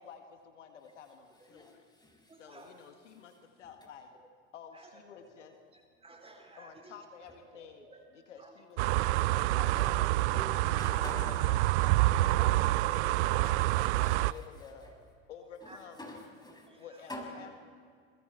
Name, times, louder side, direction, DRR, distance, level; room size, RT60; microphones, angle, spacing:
voice 1, 0.0-1.8 2.4-4.1 4.5-5.6 6.6-7.9 8.1-10.9 11.3-13.5 14.0-14.8 15.3-16.0 16.8-17.5, left 7 dB, 80° left, 5 dB, 1.9 m, -51 dB
voice 2, 1.5-2.3 3.6-3.7 9.8-10.0 10.3-11.4 13.4-13.6 14.3-14.4 15.6-15.7 16.0-16.7 17.1-17.5, left 1 dB, 10° left, 0 dB, 7.0 m, -45 dB
voice 3, 2.3-2.8 3.2-3.3 4.1-4.2 4.7-5.0 5.4-8.6 13.6-13.8 14.2-14.4 14.8-15.0 15.6-15.8 16.6-17.2, right 2 dB, 15° right, 3 dB, 3.7 m, -56 dB
sound 1, 8.8-14.3, right 17 dB, 70° right, 0.5 m, -27 dB
28.0 x 22.0 x 4.5 m, 2.1 s
hypercardioid pair, 70°, 36 cm